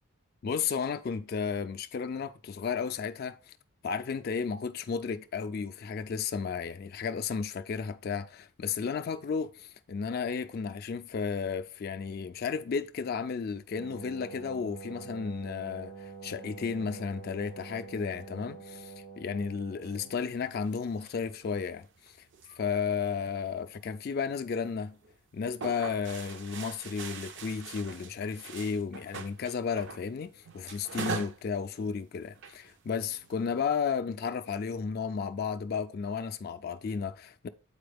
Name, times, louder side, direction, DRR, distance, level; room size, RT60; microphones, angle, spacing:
voice 1, 0.4-3.6 3.8-22.3 22.6-25.0 25.3-37.5, left 6 dB, 45° left, 0.3 m, -33 dB
Wind instrument woodwind instrument, 13.7-20.3, right 5 dB, 75° right, 1.7 m, -46 dB
sound 1, 19.8-21.6 21.8-23.3 23.8-24.1 24.5-24.6 25.0-25.2 25.4-30.1 30.4-31.4 31.7-31.9 32.3-33.6, right 5 dB, 55° right, 0.5 m, -43 dB
8.6 x 4.1 x 3.4 m
head